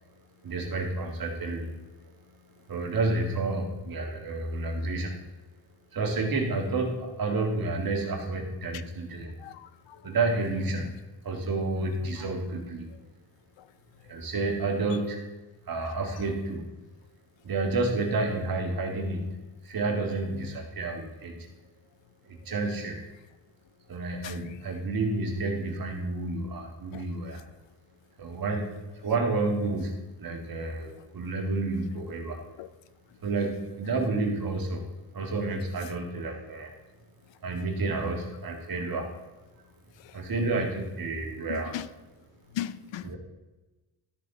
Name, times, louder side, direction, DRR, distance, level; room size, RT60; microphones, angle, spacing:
voice 1, 0.4-1.7 2.7-5.2 5.9-9.4 10.0-10.9 11.2-12.9 14.1-15.2 15.7-16.7 17.4-19.3 19.6-21.4 22.3-23.0 23.9-27.4 28.2-28.7 29.0-32.4 33.2-34.8 35.1-36.7 37.4-39.1 40.1-41.8 43.0-43.2, right 3 dB, 50° right, 1 dB, 2.0 m, -30 dB
voice 2, 9.4-10.0 10.7-10.8 24.2-24.6 26.9-27.1 32.6-32.7 40.0-40.1 41.5-41.9 42.5-43.1, left 12 dB, 85° left, 15 dB, 0.6 m, -38 dB
12.5 x 6.2 x 3.9 m, 1.1 s
wide cardioid pair, 130°, 43 cm